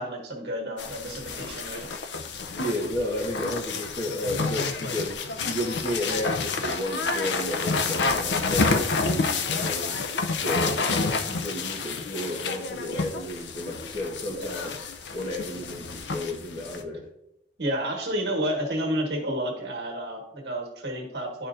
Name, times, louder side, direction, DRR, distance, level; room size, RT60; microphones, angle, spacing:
voice 1, 0.0-1.9 14.3-14.5 17.6-21.5, equal, 65° right, 1 dB, 1.5 m, -30 dB
sound 1, 0.8-16.8, left 4 dB, 80° left, 0.6 m, -29 dB
voice 2, 2.5-9.9 10.3-14.7 15.1-17.0, left 1 dB, 25° left, -1 dB, 1.2 m, -32 dB
10.5 x 4.3 x 2.5 m, 0.82 s
head